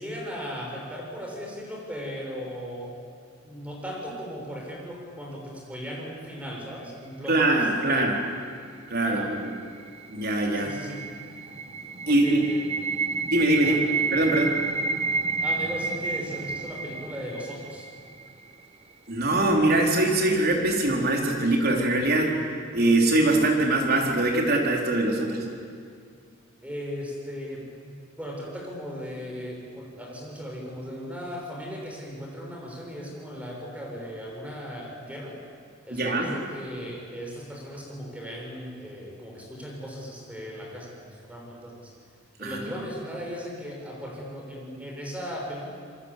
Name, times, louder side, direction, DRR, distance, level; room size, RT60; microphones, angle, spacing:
voice 1, 0.0-3.0 3.4-7.7 9.0-9.4 10.5-11.0 12.0-12.6 13.6-13.8 15.4-17.9 26.6-35.4 35.8-41.9 42.4-45.6, equal, 5° right, -1 dB, 6.6 m, -37 dB
voice 2, 7.3-8.2 8.9-9.5 10.1-10.7 12.1-12.4 13.1-13.8 14.1-14.6 19.1-22.4 22.7-25.5 35.9-36.3 42.4-42.6, right 2 dB, 50° right, 1 dB, 4.4 m, -23 dB
sound 1, 9.6-18.5, right 4 dB, 30° right, 1.1 m, -31 dB
27.0 x 22.5 x 8.5 m, 2.2 s
head